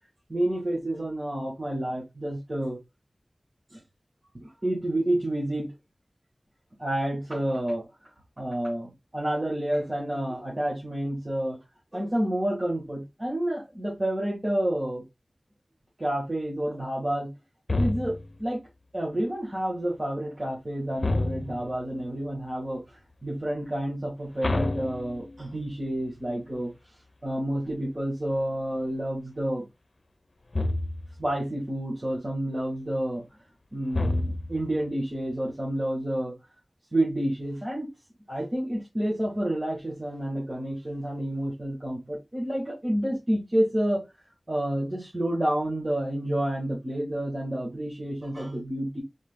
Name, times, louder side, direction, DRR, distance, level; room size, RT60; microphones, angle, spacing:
voice 1, 0.3-2.8 3.7-3.8 4.4-5.7 6.8-7.8 8.4-11.6 11.9-15.0 16.0-17.3 17.7-18.6 18.9-26.7 27.2-29.6 31.2-33.2 33.7-36.4 36.9-37.9 38.3-44.0 44.5-49.0, right 1 dB, 40° right, 1.9 m, -29 dB
sound 1, 17.7-18.4 21.0-21.8 24.4-25.6 30.5-31.2 33.9-34.7, left 2 dB, 65° left, 0.6 m, -28 dB
3.9 x 3.1 x 3.8 m
wide cardioid pair, 60°, 0 cm